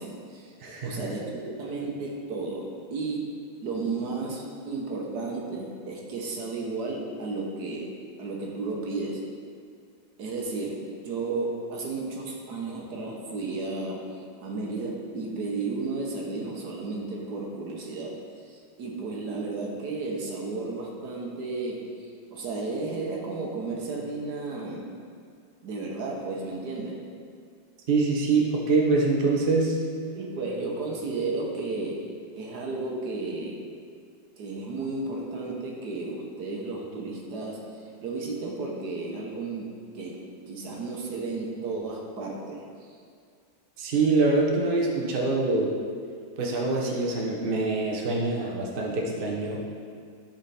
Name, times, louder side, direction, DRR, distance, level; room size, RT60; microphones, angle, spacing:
voice 1, 0.0-0.5 0.8-3.3 3.6-9.2 10.2-25.0 25.6-27.1 30.1-32.1 32.3-33.6 34.4-43.0, right 3 dB, 60° right, -1 dB, 1.4 m, -33 dB
voice 2, 0.6-1.1 27.9-29.8 43.8-45.7 46.4-49.7, right 3 dB, 40° right, -2 dB, 0.8 m, -25 dB
12.0 x 4.4 x 4.1 m, 2.1 s
omnidirectional pair, 2.1 m